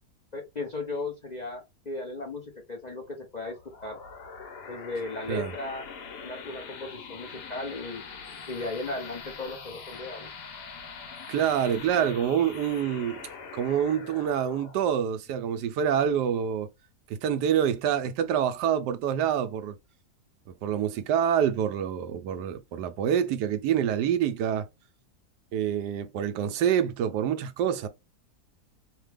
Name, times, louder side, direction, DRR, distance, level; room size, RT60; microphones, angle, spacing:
voice 1, 0.3-4.0 4.7-5.8 6.2-8.0 8.5-10.3, left 2 dB, 45° left, 0.5 m, -36 dB
sound 1, 3.4-16.5, left 5 dB, 85° left, 1.4 m, -44 dB
voice 2, 11.3-13.3 13.5-16.7 17.1-19.7 20.6-24.7 25.5-27.9, right 9 dB, 85° right, 1.2 m, -26 dB
3.2 x 2.2 x 3.3 m
omnidirectional pair, 1.7 m